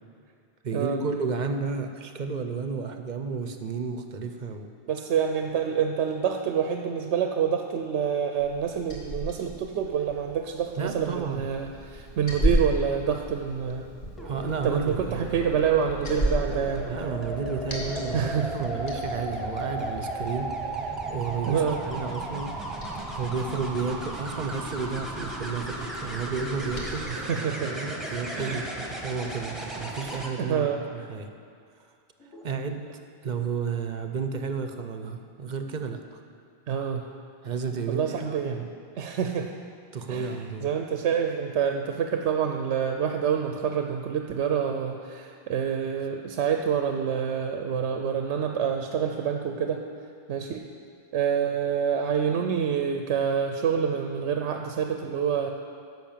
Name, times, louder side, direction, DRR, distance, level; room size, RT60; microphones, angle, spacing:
voice 1, 0.6-4.7 10.8-11.4 14.2-15.4 16.9-22.5 23.1-30.7 30.9-31.3 32.4-32.9 33.2-36.2 37.4-38.7 39.9-40.7, right 5 dB, 50° right, 6 dB, 0.7 m, -32 dB
voice 2, 4.9-13.9 14.6-16.9 18.1-18.7 21.5-21.8 27.1-27.7 28.3-28.6 30.4-30.8 36.7-37.0 37.9-38.6 39.0-39.5 40.1-49.8 50.3-50.7 51.1-55.5, right 7 dB, 90° right, 4 dB, 0.9 m, -27 dB
Liquid, 8.4-27.0, equal, 50° left, 1.7 m, -35 dB
sound 1, 14.2-30.3 32.2-32.5, right 1 dB, ahead, 1.1 m, -35 dB
10.5 x 5.8 x 7.3 m, 2.3 s
omnidirectional pair, 1.1 m